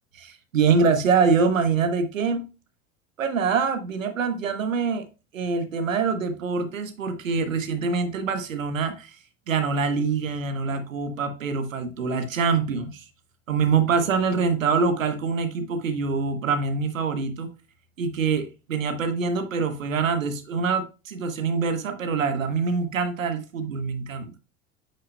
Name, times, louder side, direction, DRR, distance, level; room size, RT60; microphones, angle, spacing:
voice 1, 0.1-2.4 3.2-5.1 5.3-9.2 9.5-13.0 13.5-17.6 18.0-24.3, right 5 dB, 80° right, 1.1 m, -25 dB
8.7 x 5.6 x 2.2 m
figure-of-eight pair, 70°, 39 cm